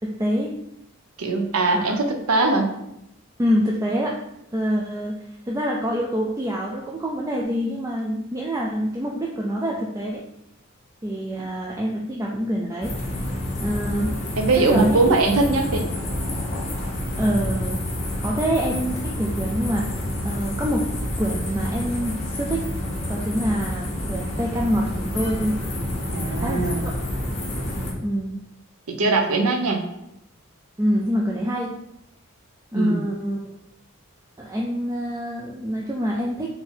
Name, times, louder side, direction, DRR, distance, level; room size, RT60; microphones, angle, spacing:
voice 1, 0.0-0.5 1.7-1.9 3.4-4.2 4.5-10.2 11.0-12.9 13.6-14.2 14.6-15.0 17.2-17.8 18.2-20.9 21.2-22.7 23.1-25.6 26.4-27.0 28.0-28.4 30.8-31.7 32.7-33.4 34.4-36.5, equal, 15° right, -2 dB, 0.4 m, -26 dB
voice 2, 1.2-2.7 14.4-15.9 26.1-26.9 28.9-29.9 32.7-33.1, right 3 dB, 90° right, 4 dB, 0.7 m, -21 dB
sound 1, 12.8-27.9, left 1 dB, 30° left, 0.9 m, -28 dB
3.9 x 2.8 x 4.3 m, 0.83 s
head